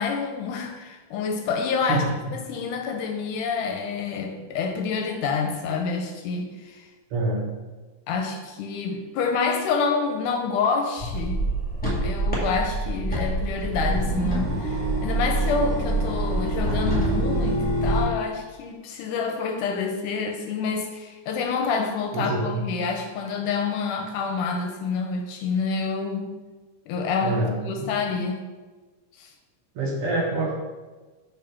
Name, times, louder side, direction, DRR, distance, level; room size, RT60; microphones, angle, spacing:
voice 1, 0.0-2.0 2.3-6.8 8.1-11.4 12.0-26.4 26.9-28.4 29.2-29.3, left 5 dB, 75° left, 4 dB, 2.0 m, -28 dB
voice 2, 7.1-7.5 22.1-22.6 27.2-27.9 29.7-30.5, right 2 dB, 90° right, -2 dB, 1.2 m, -26 dB
sound 1, 11.0-18.1, right 1 dB, 5° left, 1.1 m, -25 dB
5.4 x 4.5 x 5.7 m, 1.3 s
omnidirectional pair, 3.9 m